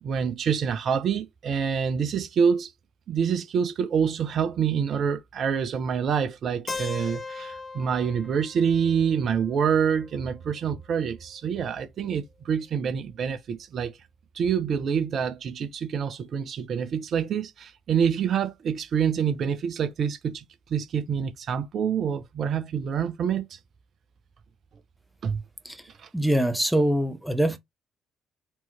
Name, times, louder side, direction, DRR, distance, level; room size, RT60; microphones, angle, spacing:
voice 1, 0.0-2.7 3.1-14.0 14.3-23.6 25.2-25.4 26.0-26.1, right 7 dB, 50° right, 0.6 m, -26 dB
Keyboard (musical), 6.7-10.6, left 4 dB, 35° left, 0.5 m, -39 dB
voice 2, 26.1-27.6, right 1 dB, ahead, 0.9 m, -23 dB
4.5 x 2.9 x 3.4 m
figure-of-eight pair, 45°, 0 cm